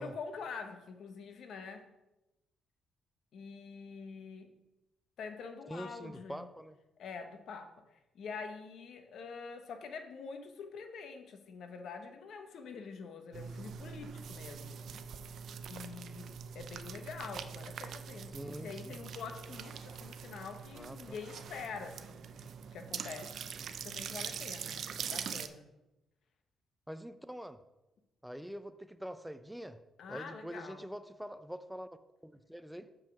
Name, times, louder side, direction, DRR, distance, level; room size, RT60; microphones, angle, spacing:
voice 1, 0.0-1.9 3.3-4.5 5.2-6.5 7.0-7.7 8.1-15.1 15.7-22.3 22.7-25.6 30.0-30.8, left 5 dB, 70° left, 6 dB, 1.0 m, -46 dB
voice 2, 5.7-6.8 18.3-19.0 20.7-21.2 24.9-25.1 26.9-27.6 28.2-29.8 30.1-32.0 32.2-32.9, equal, 5° right, 11 dB, 0.4 m, -44 dB
sound 1, 13.3-25.5, right 7 dB, 65° right, 0.5 m, -43 dB
7.4 x 5.0 x 5.9 m, 0.97 s
cardioid pair, 90°, 0 cm